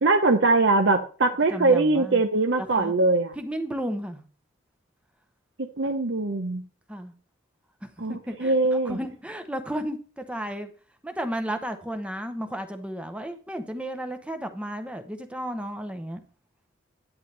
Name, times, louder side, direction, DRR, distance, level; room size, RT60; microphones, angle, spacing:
voice 1, 0.0-3.3 5.8-6.6 8.0-9.0, right 3 dB, 70° right, 5 dB, 0.9 m, -22 dB
voice 2, 1.5-2.2 2.6-2.9 3.4-4.2 6.9-7.1 8.1-10.7 11.0-16.2, equal, 5° right, 7 dB, 0.8 m, -33 dB
11.0 x 8.7 x 3.4 m, 0.39 s
head